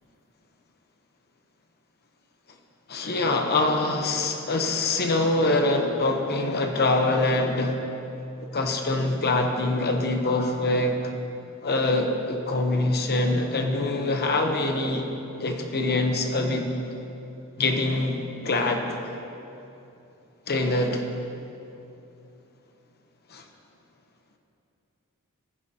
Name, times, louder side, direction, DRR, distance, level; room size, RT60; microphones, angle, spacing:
voice 1, 2.9-7.8 8.5-11.0 11.6-15.0 15.4-16.7 17.6-19.0 20.5-21.0 23.3-23.4, left 2 dB, 45° left, 4 dB, 0.9 m, -24 dB
18.5 x 9.9 x 2.9 m, 2.8 s
head